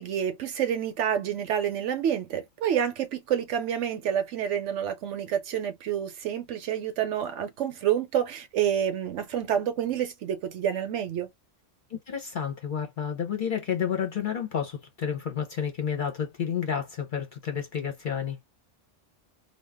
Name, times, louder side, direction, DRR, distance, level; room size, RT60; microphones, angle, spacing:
voice 1, 0.0-11.3, right 9 dB, 70° right, 0.9 m, -28 dB
voice 2, 11.9-18.4, left 7 dB, 50° left, 0.7 m, -30 dB
2.4 x 2.2 x 3.4 m
omnidirectional pair, 1.3 m